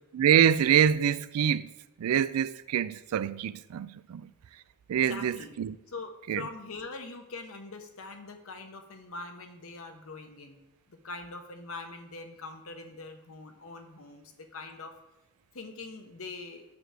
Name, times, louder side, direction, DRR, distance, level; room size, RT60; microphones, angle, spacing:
voice 1, 0.1-1.7 2.0-4.2 4.9-5.7 6.3-6.4, right 9 dB, 90° right, 0.3 m, -25 dB
voice 2, 4.9-5.5 5.9-10.6 10.9-14.9 15.5-16.6, left 3 dB, 70° left, 0.8 m, -43 dB
6.9 x 6.3 x 3.4 m
head